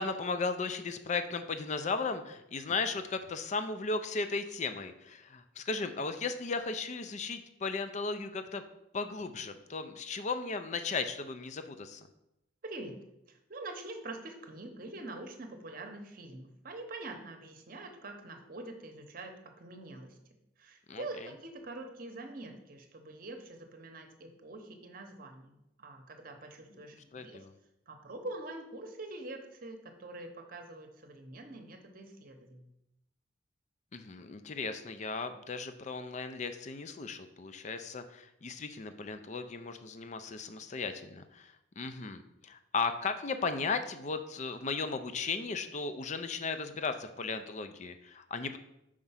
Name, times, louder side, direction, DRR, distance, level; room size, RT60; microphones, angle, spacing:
voice 1, 0.0-8.6 8.9-12.0 20.9-21.0 27.1-27.5 33.9-48.6, left 4 dB, 40° left, 9 dB, 0.5 m, -36 dB
voice 2, 12.6-13.0 13.3-20.2 20.6-27.4 27.9-32.7, right 2 dB, 50° right, 5 dB, 0.8 m, -45 dB
5.0 x 4.5 x 5.6 m, 0.86 s
head